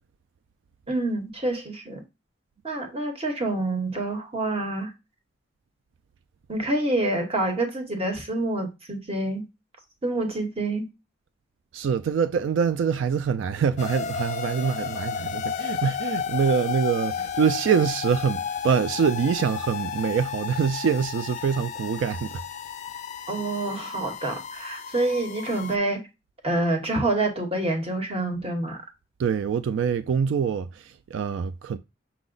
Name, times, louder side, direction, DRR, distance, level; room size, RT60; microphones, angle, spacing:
voice 1, 0.9-2.0 2.6-4.9 6.5-9.4 10.0-10.9 23.3-26.0 26.4-28.8, right 2 dB, 35° right, 1.0 m, -27 dB
voice 2, 11.7-22.4 29.2-31.8, right 6 dB, 90° right, 0.3 m, -25 dB
sound 1, 13.8-25.8, left 7 dB, 40° left, 0.3 m, -32 dB
5.8 x 2.0 x 3.8 m
head